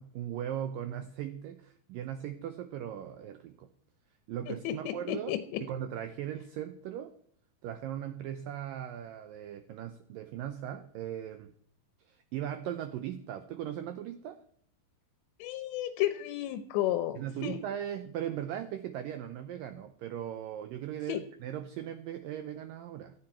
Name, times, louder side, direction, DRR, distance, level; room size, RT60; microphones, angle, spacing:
voice 1, 0.0-3.7 4.3-5.3 5.6-7.1 7.6-11.5 12.1-14.4 17.2-23.1, right 10 dB, 85° right, 9 dB, 2.0 m, -38 dB
voice 2, 4.5-5.6 15.4-17.6 21.1-21.2, left 13 dB, 90° left, 10 dB, 3.1 m, -33 dB
17.5 x 13.0 x 4.5 m, 0.63 s
omnidirectional pair, 4.9 m